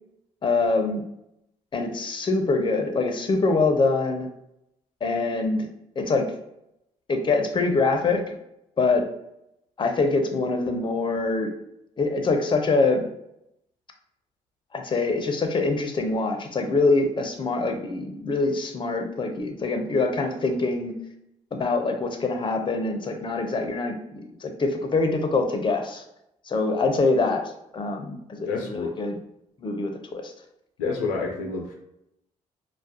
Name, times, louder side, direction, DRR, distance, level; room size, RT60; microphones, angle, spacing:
voice 1, 0.4-1.0 1.7-4.3 5.0-5.7 6.0-6.3 7.1-8.2 8.8-9.1 9.8-11.5 12.0-13.0 14.7-21.0 21.5-26.0 26.5-27.4 27.7-29.2 29.6-30.2, left 3 dB, 30° left, 5 dB, 0.5 m, -24 dB
voice 2, 28.5-29.0 30.8-31.7, left 4 dB, 90° left, 2 dB, 0.4 m, -28 dB
2.3 x 2.0 x 2.7 m, 0.82 s
hypercardioid pair, 55°, 16 cm